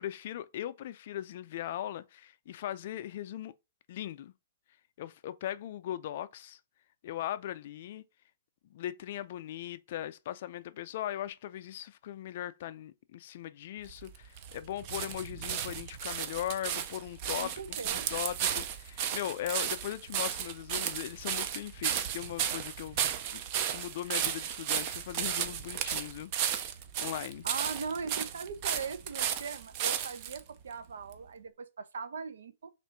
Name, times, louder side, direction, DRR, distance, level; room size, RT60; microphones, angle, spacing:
voice 1, 0.0-3.5 3.9-4.3 5.0-6.6 7.0-8.0 8.7-17.5 17.8-23.4 23.7-26.3 27.0-27.5, left 12 dB, 50° left, 0.3 m, -39 dB
sound 1, 13.8-30.4 31.1-31.2, right 9 dB, 35° right, 0.4 m, -34 dB
voice 2, 17.4-18.1 27.4-32.7, right 5 dB, 80° right, 0.6 m, -39 dB
3.6 x 2.5 x 4.4 m
hypercardioid pair, 155°, 0 cm